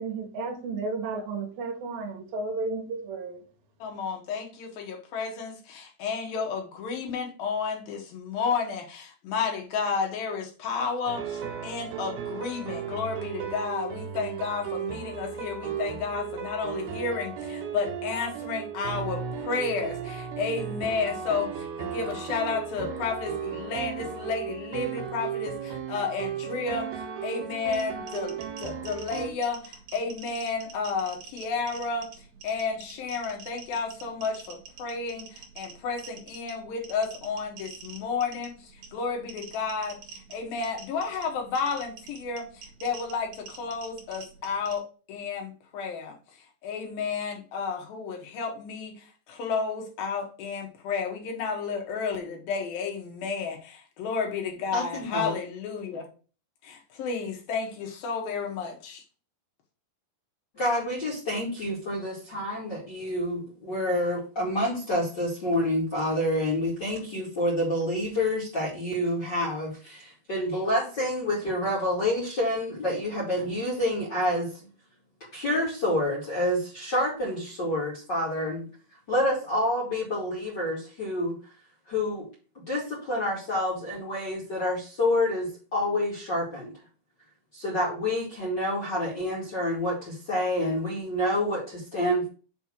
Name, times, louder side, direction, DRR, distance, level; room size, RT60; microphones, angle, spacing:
voice 1, 0.0-3.4, right 3 dB, 75° right, 3.0 m, -33 dB
voice 2, 3.8-26.9 27.2-32.1 32.4-44.8 45.1-46.2 46.6-56.1 56.6-59.0, left 5 dB, 75° left, 3.3 m, -32 dB
sound 1, 11.1-29.3, right 8 dB, 90° right, 3.0 m, -35 dB
sound 2, 27.6-44.8, right 6 dB, 55° right, 2.9 m, -47 dB
voice 3, 54.7-55.3 60.5-74.5 75.3-78.7 79.1-81.4 81.9-82.3 82.7-86.7 87.5-92.3, left 1 dB, 35° left, 2.2 m, -28 dB
7.0 x 3.5 x 5.9 m
omnidirectional pair, 4.3 m